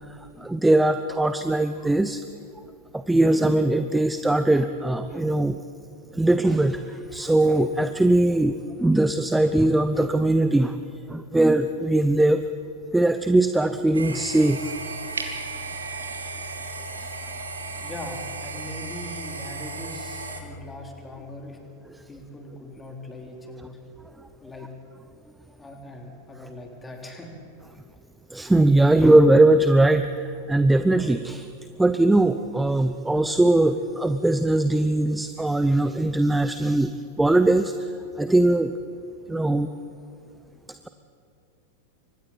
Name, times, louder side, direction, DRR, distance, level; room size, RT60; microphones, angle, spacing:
voice 1, 0.1-2.2 2.9-5.6 6.1-10.8 11.1-12.4 12.9-14.7 17.0-17.1 28.3-31.5 31.8-37.9 38.2-38.7 39.3-39.7, right 2 dB, 5° right, 10 dB, 0.7 m, -20 dB
sound 1, 13.9-20.4, right 3 dB, 75° right, 2.3 m, -35 dB
voice 2, 17.8-21.6 22.1-23.8 24.4-24.7 25.6-27.3, left 1 dB, 10° left, 1 dB, 3.9 m, -40 dB
29.5 x 25.0 x 4.4 m, 2.5 s
figure-of-eight pair, 90°, 0 cm